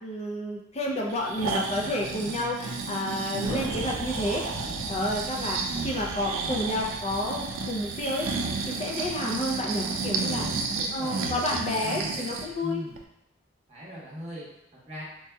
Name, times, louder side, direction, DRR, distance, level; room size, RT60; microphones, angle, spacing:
voice 1, 0.0-4.4 4.9-8.3 8.7-10.6 10.9-12.8, left 1 dB, 35° left, -1 dB, 0.5 m, -30 dB
Breathing, 1.1-12.5 13.0-13.1, right 4 dB, 90° right, 0.4 m, -32 dB
Thunder, 3.4-8.6, equal, 80° left, 1.1 m, -40 dB
voice 2, 10.7-11.3 11.8-12.3 12.6-13.0 13.7-15.0, equal, 30° right, -7 dB, 1.1 m, -39 dB
4.5 x 2.7 x 2.2 m, 0.85 s
head